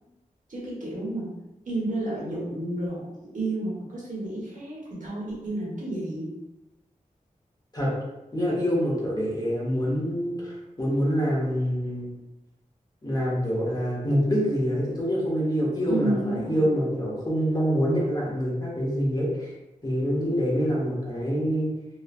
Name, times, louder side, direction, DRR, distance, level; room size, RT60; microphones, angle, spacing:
voice 1, 0.5-1.3 1.7-6.3 15.9-16.6, right 2 dB, 65° right, -6 dB, 1.0 m, -31 dB
voice 2, 8.3-12.1 13.0-19.5 19.8-21.7, equal, 25° left, -5 dB, 1.0 m, -26 dB
3.1 x 2.0 x 2.4 m, 0.96 s
wide cardioid pair, 65°, 14 cm